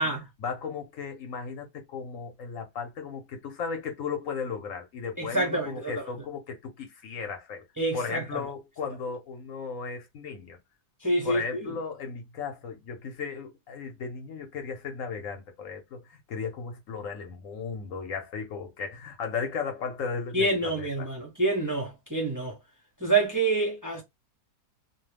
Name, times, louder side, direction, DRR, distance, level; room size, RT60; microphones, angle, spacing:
voice 1, 0.4-7.6 7.9-10.6 11.2-21.1, left 5 dB, 55° left, 1.1 m, -36 dB
voice 2, 5.2-5.9 7.8-8.4 11.0-11.7 20.3-22.5 23.0-24.0, right 2 dB, 25° right, 0.4 m, -27 dB
2.8 x 2.2 x 3.3 m
omnidirectional pair, 1.9 m